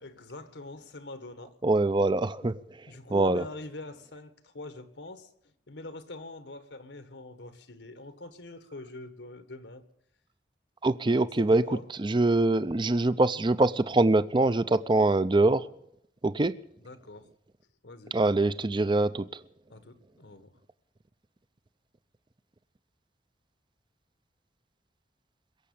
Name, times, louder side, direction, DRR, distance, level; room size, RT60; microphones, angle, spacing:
voice 1, 0.0-1.6 2.4-2.5 2.9-5.3 5.7-9.9 11.4-11.9 16.8-17.3 17.8-18.1 19.7-20.5, left 2 dB, 85° left, 1.6 m, -44 dB
voice 2, 1.6-2.8 3.1-3.4 10.8-15.7 16.2-16.5 18.1-19.4, right 2 dB, 25° right, 0.5 m, -24 dB
22.5 x 7.6 x 8.5 m
head